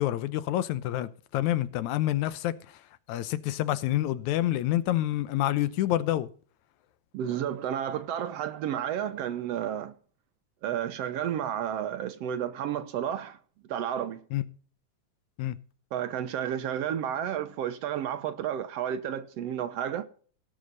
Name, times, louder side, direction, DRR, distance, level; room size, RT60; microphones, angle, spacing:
voice 1, 0.0-2.5 3.1-6.3 14.3-14.4 15.4-15.6, left 14 dB, 90° left, 2.1 m, -27 dB
voice 2, 7.1-9.9 10.6-13.4 13.7-14.2 15.9-20.0, right 9 dB, 70° right, 1.7 m, -31 dB
18.0 x 6.5 x 4.0 m
omnidirectional pair, 3.3 m